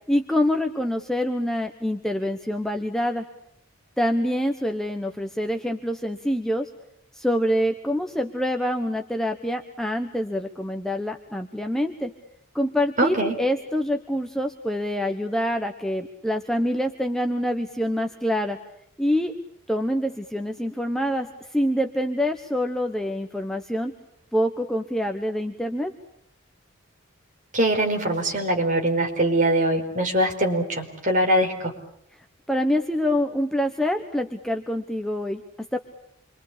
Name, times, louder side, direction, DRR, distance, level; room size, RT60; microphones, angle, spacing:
voice 1, 0.1-3.2 4.0-6.7 7.1-12.1 12.5-18.6 19.0-19.3 19.7-23.9 24.3-25.9 32.5-35.8, equal, ahead, 4 dB, 1.2 m, -26 dB
voice 2, 13.0-13.3 27.5-31.7, right 1 dB, 35° right, 3 dB, 4.7 m, -22 dB
27.5 x 24.0 x 8.5 m, 0.71 s
head